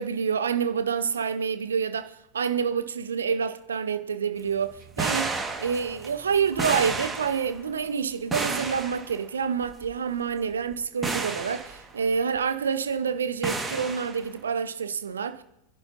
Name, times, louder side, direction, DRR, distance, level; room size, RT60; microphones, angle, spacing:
voice 1, 0.0-15.4, right 6 dB, 70° right, 0.7 m, -28 dB
sound 1, 4.7-7.7 8.3-9.2 9.6-9.9 10.5-10.7 11.0-11.8 13.4-14.2, right 3 dB, 15° right, 2.0 m, -31 dB
27.0 x 11.0 x 2.9 m
figure-of-eight pair, 90°, 0 cm